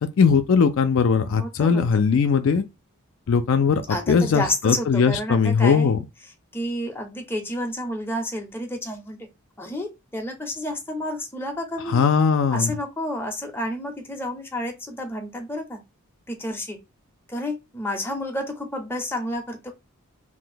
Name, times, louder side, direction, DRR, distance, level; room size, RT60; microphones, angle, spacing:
voice 1, 0.0-2.6 3.3-6.0 11.9-12.7, left 5 dB, 60° left, 0.4 m, -20 dB
voice 2, 1.4-2.0 3.9-5.9 6.5-9.3 9.6-12.1 12.5-15.8 16.3-16.8 17.3-19.7, left 1 dB, 10° left, 0.6 m, -30 dB
2.6 x 2.1 x 3.8 m
head